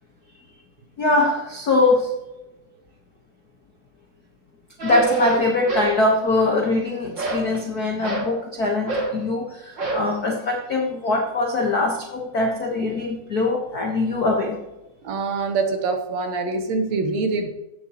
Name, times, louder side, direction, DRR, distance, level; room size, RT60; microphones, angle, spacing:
voice 1, 1.0-2.1 4.8-14.6, left 2 dB, 65° left, 0 dB, 0.9 m, -22 dB
sound 1, 4.8-6.0 6.3-6.8 7.2-8.3 8.9-9.2 9.8-10.1, right 3 dB, 40° right, 2.6 m, -26 dB
voice 2, 15.0-17.5, right 3 dB, 65° right, 5 dB, 2.0 m, -24 dB
16.0 x 7.1 x 3.0 m, 0.99 s
omnidirectional pair, 3.6 m